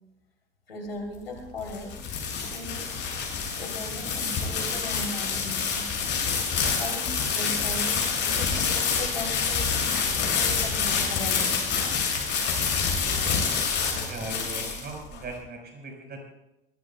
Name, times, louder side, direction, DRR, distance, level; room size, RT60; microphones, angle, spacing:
voice 1, 0.7-2.1 2.5-3.0 3.6-5.9 6.7-9.7 10.3-11.6, left 1 dB, 85° left, 2 dB, 3.4 m, -38 dB
sound 1, 1.4-15.2, left 5 dB, 40° left, 6.8 m, -27 dB
voice 2, 14.0-16.2, right 3 dB, 35° right, 2 dB, 4.8 m, -38 dB
23.0 x 19.0 x 2.3 m, 0.91 s
figure-of-eight pair, 70°, 29 cm